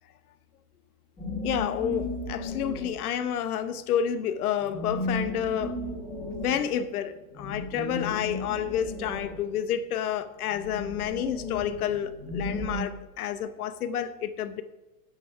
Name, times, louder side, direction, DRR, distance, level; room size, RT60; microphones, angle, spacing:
sound 1, 1.2-3.2 4.6-9.9 10.5-12.8, left 1 dB, 5° left, 1.4 m, -35 dB
voice 1, 1.4-5.8 6.4-14.6, left 9 dB, 70° left, 0.9 m, -30 dB
9.7 x 6.9 x 5.8 m
hypercardioid pair, 160°, 46 cm